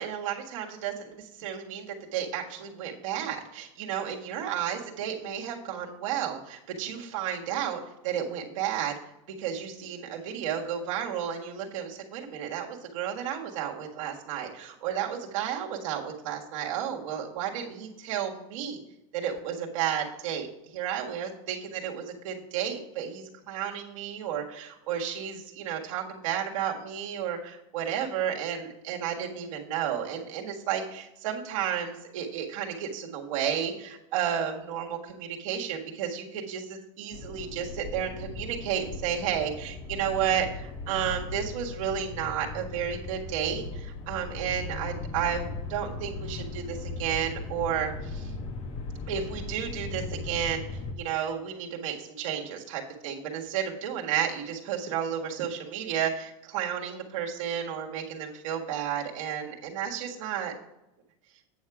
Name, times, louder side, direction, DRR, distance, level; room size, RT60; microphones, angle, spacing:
voice 1, 0.0-1.9 2.1-9.0 9.4-18.8 19.1-20.5 20.7-48.3 49.1-60.5, right 9 dB, 80° right, -1 dB, 1.7 m, -32 dB
sound 1, 37.1-50.9, left 3 dB, 35° left, 1.2 m, -38 dB
9.1 x 6.4 x 4.8 m, 0.92 s
supercardioid pair, 130°, 17 cm